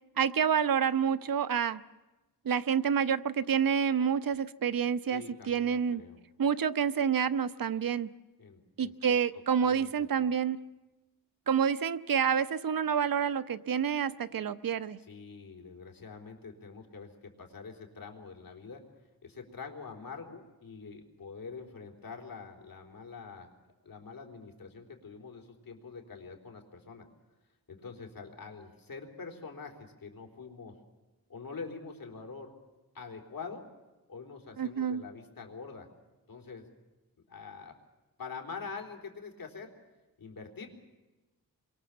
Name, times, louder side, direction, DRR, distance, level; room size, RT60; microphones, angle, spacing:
voice 1, 0.2-1.8 2.4-6.0 6.4-8.1 8.8-10.6 11.5-15.0 34.6-35.0, right 7 dB, 70° right, 13 dB, 0.9 m, -28 dB
voice 2, 5.1-6.2 8.4-9.2 9.6-10.3 15.0-18.8 19.2-23.5 23.8-27.1 27.7-30.7 31.3-32.5 32.9-33.6 34.1-35.9 36.3-36.7 37.3-37.7 38.2-39.7 40.2-40.7, left 5 dB, 70° left, 2 dB, 4.0 m, -45 dB
28.0 x 23.5 x 7.4 m, 1.1 s
wide cardioid pair, 105°, 35 cm